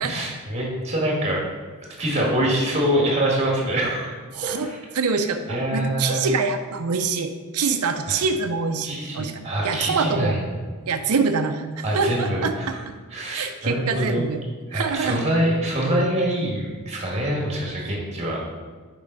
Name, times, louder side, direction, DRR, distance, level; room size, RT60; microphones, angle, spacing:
voice 1, 0.1-1.4 2.0-4.1 4.4-4.8 5.5-6.3 8.1-8.2 8.8-10.5 11.8-12.8 13.1-14.3 14.7-18.4, right 1 dB, 30° right, -2 dB, 1.7 m, -25 dB
voice 2, 4.3-4.7 4.9-10.4 10.9-12.9 13.3-14.4 14.7-15.2, right 4 dB, 85° right, 7 dB, 0.5 m, -25 dB
6.9 x 5.2 x 3.9 m, 1.5 s
head